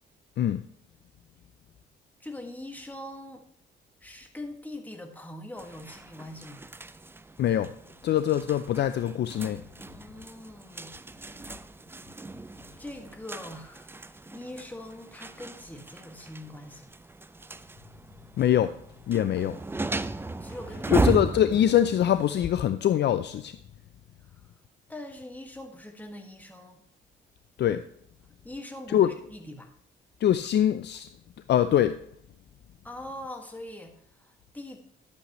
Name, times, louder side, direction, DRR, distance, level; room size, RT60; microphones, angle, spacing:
voice 1, 2.2-3.5 4.0-6.7 9.8-11.0 12.8-16.9 20.4-21.2 24.2-24.4 24.9-26.8 28.4-29.7 32.8-34.8, left 1 dB, 10° left, 3 dB, 1.9 m, -42 dB
sound 1, 5.6-22.5, right 3 dB, 10° right, 0.4 m, -36 dB
voice 2, 7.4-7.7 8.0-9.6 18.4-18.7 19.1-19.6 20.9-23.5 27.6-27.8 28.9-29.1 30.2-31.1 31.5-32.0, left 10 dB, 60° left, 11 dB, 0.5 m, -23 dB
11.5 x 8.4 x 3.1 m, 0.66 s
cardioid pair, 90°, 20 cm